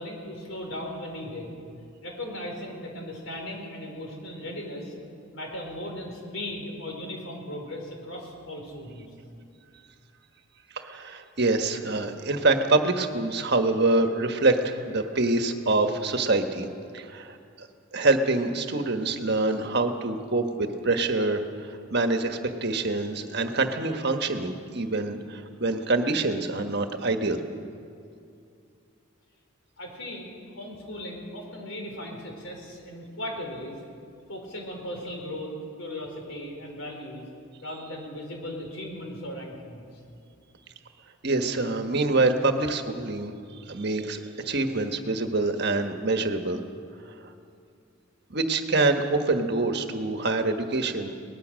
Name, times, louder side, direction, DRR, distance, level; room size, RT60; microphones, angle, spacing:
voice 1, 0.0-1.5 2.0-4.9 5.3-9.1 29.8-33.8 34.3-37.3 37.6-39.9, left 1 dB, 75° left, 1 dB, 4.6 m, -37 dB
voice 2, 10.7-16.7 16.9-17.7 17.9-21.4 21.9-27.4 41.2-43.3 43.7-46.6 48.3-51.2, right 2 dB, 55° right, 6 dB, 1.4 m, -25 dB
22.5 x 19.0 x 6.4 m, 2.5 s
head